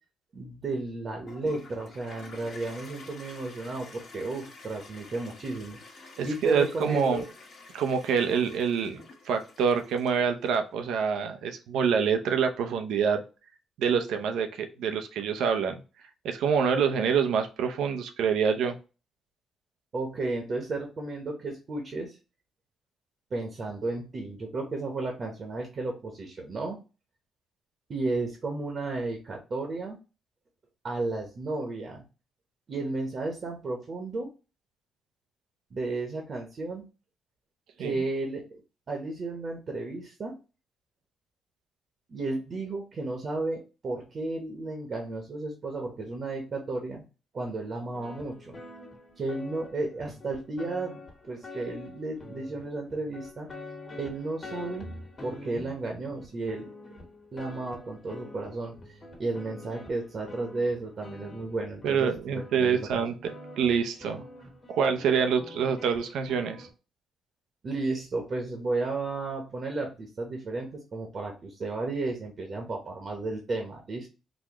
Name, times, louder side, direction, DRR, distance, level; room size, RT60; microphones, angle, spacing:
voice 1, 0.3-7.2 19.9-22.2 23.3-26.8 27.9-30.0 30.8-32.0 32.7-34.3 35.7-36.9 37.8-38.4 38.9-40.3 42.1-47.0 47.3-48.6 49.2-53.5 54.0-54.9 55.2-56.7 57.3-63.0 67.6-74.1, right 2 dB, 45° right, 2 dB, 0.9 m, -33 dB
Toilet flush, 1.3-10.5, left 3 dB, 55° left, 1.2 m, -49 dB
voice 2, 6.2-7.2 7.7-13.2 13.8-15.8 16.2-18.8 37.8-38.0 61.8-63.3 63.6-64.2 64.7-66.7, right 6 dB, 80° right, 6 dB, 0.6 m, -26 dB
sound 1, 47.9-66.7, left 2 dB, 35° left, 1.3 m, -46 dB
4.1 x 2.3 x 2.9 m, 0.32 s
cardioid pair, 90°, 0 cm